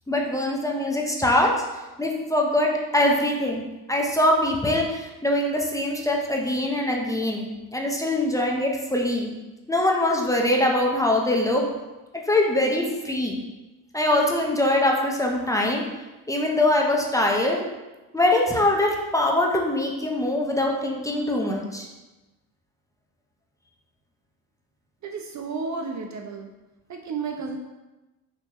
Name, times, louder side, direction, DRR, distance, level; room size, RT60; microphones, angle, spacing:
voice 1, 0.1-1.5 2.0-3.6 3.9-7.5 7.7-9.3 9.7-11.7 12.3-13.4 13.9-15.8 16.3-17.6 18.1-21.9, left 1 dB, 10° left, 0 dB, 0.8 m, -23 dB
voice 2, 25.0-26.5 26.9-27.6, right 4 dB, 45° right, 3 dB, 0.6 m, -32 dB
5.6 x 3.0 x 3.0 m, 1.1 s
supercardioid pair, 75°, 42 cm